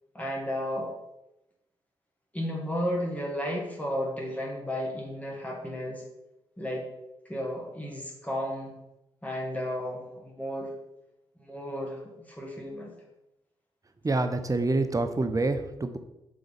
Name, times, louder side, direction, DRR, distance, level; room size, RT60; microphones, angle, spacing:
voice 1, 0.1-0.9 2.3-6.0 6.6-6.8 7.3-8.7 9.2-10.7 11.4-13.0, equal, 10° left, -2 dB, 1.9 m, -33 dB
voice 2, 14.0-16.0, right 2 dB, 25° right, 9 dB, 0.8 m, -27 dB
5.1 x 3.8 x 5.1 m, 0.90 s
hypercardioid pair, 40°, 13 cm